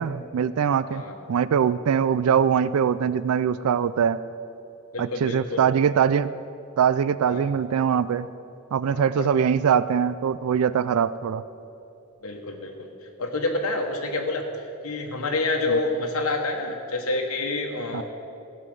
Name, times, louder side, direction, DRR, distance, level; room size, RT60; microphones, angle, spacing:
voice 1, 0.0-1.0 1.3-4.2 5.0-6.3 6.8-8.3 8.7-11.4 15.7-15.8 17.9-18.0, right 7 dB, 90° right, 16 dB, 0.4 m, -22 dB
voice 2, 4.9-5.7 7.3-7.5 8.9-9.3 12.2-12.9 13.2-18.0, left 2 dB, 85° left, 2 dB, 1.1 m, -28 dB
16.0 x 5.6 x 7.7 m, 2.7 s
head